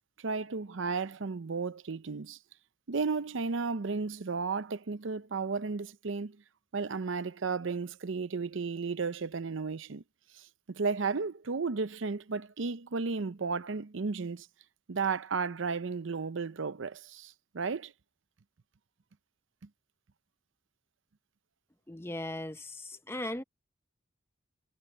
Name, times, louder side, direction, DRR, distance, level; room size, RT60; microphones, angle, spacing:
voice 1, 0.2-2.4 2.9-6.4 6.7-10.0 10.3-14.5 14.9-17.9, right 4 dB, 70° right, 0.6 m, -34 dB
voice 2, 21.9-23.4, left 1 dB, 10° left, 0.7 m, -38 dB
head